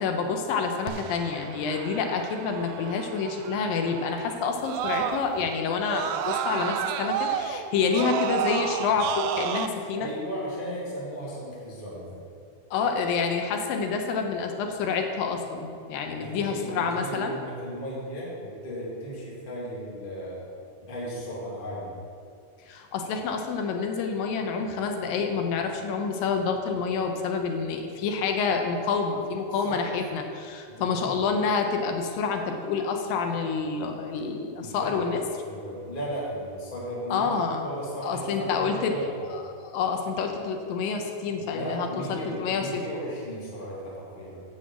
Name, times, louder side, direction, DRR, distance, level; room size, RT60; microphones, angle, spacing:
voice 1, 0.0-10.1 12.7-17.3 22.7-35.2 37.1-37.7 38.0-38.9 39.3-42.8, left 5 dB, 80° left, 4 dB, 2.4 m, -28 dB
Screaming, 0.9-5.5 5.8-9.7, right 9 dB, 90° right, 1.9 m, -31 dB
voice 2, 10.0-12.1 16.1-20.4 20.8-21.9 29.6-29.8 30.7-31.2 34.6-35.0 35.4-37.3 37.6-39.1 41.4-44.4, equal, 15° left, -7 dB, 2.0 m, -36 dB
7.4 x 6.8 x 7.4 m, 2.4 s
omnidirectional pair, 4.3 m